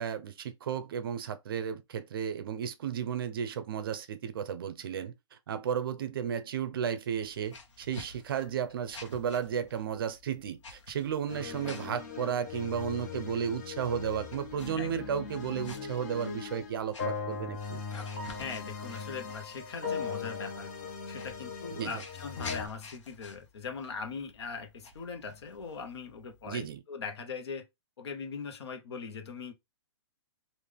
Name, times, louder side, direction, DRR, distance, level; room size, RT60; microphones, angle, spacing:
voice 1, 0.0-5.1 5.5-17.8 21.7-22.0 26.4-26.8, right 8 dB, 50° right, 0.6 m, -34 dB
sound 1, 7.1-26.8, left 4 dB, 90° left, 1.1 m, -51 dB
sound 2, 11.3-22.7, left 5 dB, 35° left, 0.9 m, -39 dB
voice 2, 18.4-27.7 28.0-29.5, left 5 dB, 60° left, 1.0 m, -41 dB
3.7 x 2.5 x 3.3 m
hypercardioid pair, 170°, 15 cm